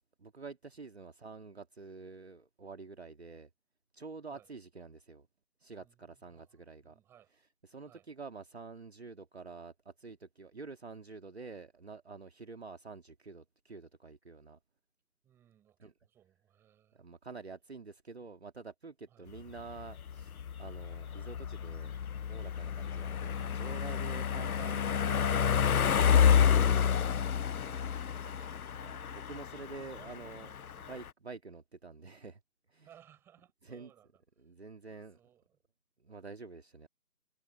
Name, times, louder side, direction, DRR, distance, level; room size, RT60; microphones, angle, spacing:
voice 1, 0.2-3.5 3.9-5.3 5.6-6.9 7.6-14.6 15.8-15.9 17.0-22.0 22.2-27.0 28.8-32.4 32.7-32.9 33.6-33.9 34.4-35.2 36.0-36.9, right 4 dB, 45° right, 1.8 m, -48 dB
voice 2, 5.8-7.3 7.8-8.1 15.2-17.1 19.1-19.3 27.0-28.9 29.8-30.4 30.7-31.0 32.8-34.1 34.4-34.5 35.2-35.5, right 10 dB, 5° right, 6.0 m, -63 dB
sound 1, 19.4-31.1, left 8 dB, 70° left, 0.5 m, -29 dB
figure-of-eight pair, 160°, 45 cm